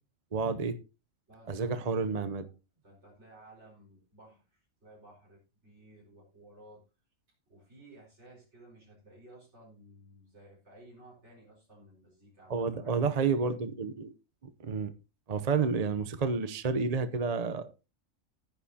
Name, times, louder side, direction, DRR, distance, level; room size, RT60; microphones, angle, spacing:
voice 1, 0.3-0.8 1.5-2.5 12.5-14.1 14.6-14.9 15.3-17.7, right 5 dB, 35° right, 0.7 m, -30 dB
voice 2, 1.3-6.8 7.5-13.4 15.4-15.5, right 1 dB, 55° right, 5.1 m, -56 dB
14.5 x 10.5 x 2.8 m
omnidirectional pair, 1.4 m